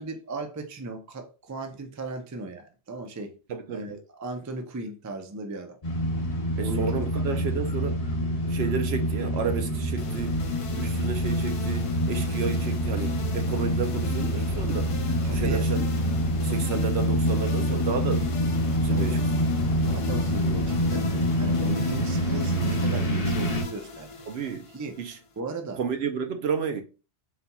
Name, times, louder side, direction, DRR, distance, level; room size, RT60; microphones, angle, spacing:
voice 1, 0.0-3.3 3.7-5.8 6.6-7.1 7.3-7.6 15.2-15.7 18.0-18.2 18.9-19.2 19.8-21.1 21.4-24.1 24.7-24.9 25.4-25.8, right 2 dB, 25° right, 0.4 m, -36 dB
voice 2, 3.5-4.0 6.6-8.0 8.5-10.4 10.8-14.9 15.3-15.8 16.4-18.2 18.8-19.2 24.3-24.7 25.0-25.2 25.8-26.8, right 6 dB, 70° right, 0.8 m, -31 dB
sound 1, 5.8-23.6, equal, 35° left, 1.0 m, -26 dB
sound 2, 10.0-25.4, left 5 dB, 60° left, 0.3 m, -39 dB
4.1 x 4.1 x 2.3 m
omnidirectional pair, 1.2 m